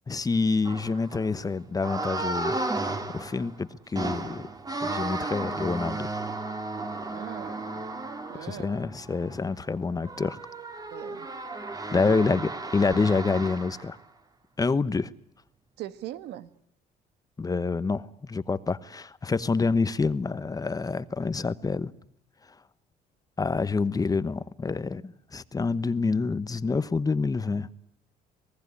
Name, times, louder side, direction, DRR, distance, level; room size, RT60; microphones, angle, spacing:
voice 1, 0.1-2.6 3.1-4.4 4.8-6.1 8.3-10.4 11.9-14.0 14.6-15.1 17.4-21.9 23.4-27.7, left 4 dB, 20° left, 1.1 m, -27 dB
sound 1, 0.6-1.3 1.8-3.6 4.0-14.0, right 2 dB, 20° right, 2.7 m, -34 dB
voice 2, 7.1-7.9 8.3-8.8 10.9-11.3 12.0-12.1 15.8-16.5, right 13 dB, 80° right, 1.7 m, -40 dB
26.5 x 19.5 x 9.8 m
cardioid pair, 110°, 17 cm